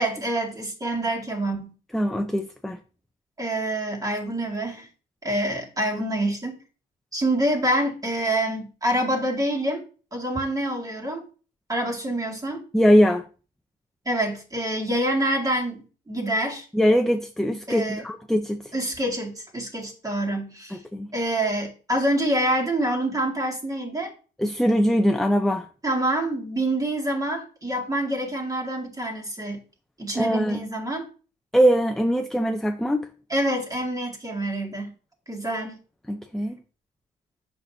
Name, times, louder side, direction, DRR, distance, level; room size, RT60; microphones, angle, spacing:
voice 1, 0.0-1.7 3.4-4.9 5.2-6.6 7.1-9.8 10.1-11.3 11.7-12.6 14.1-16.7 17.7-18.0 18.7-20.8 21.1-24.1 25.8-29.6 30.0-31.1 33.3-34.9 35.3-35.8, right 1 dB, 15° right, 2.2 m, -26 dB
voice 2, 1.9-2.8 12.7-13.2 16.7-18.7 20.7-21.1 24.4-25.7 30.1-30.6 31.5-33.1 36.1-36.6, equal, ahead, 0.6 m, -21 dB
7.7 x 6.0 x 2.7 m
cardioid pair, 90°, 20 cm